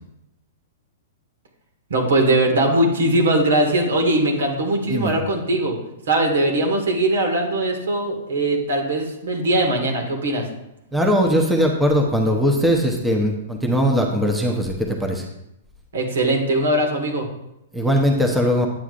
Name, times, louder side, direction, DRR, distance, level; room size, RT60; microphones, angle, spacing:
voice 1, 1.9-5.8 6.1-10.5 15.9-17.3, right 1 dB, 80° right, 2 dB, 1.9 m, -20 dB
voice 2, 10.9-15.2 17.7-18.7, equal, 5° right, 1 dB, 0.9 m, -20 dB
8.6 x 7.7 x 2.5 m, 0.85 s
hypercardioid pair, 135°, 0 cm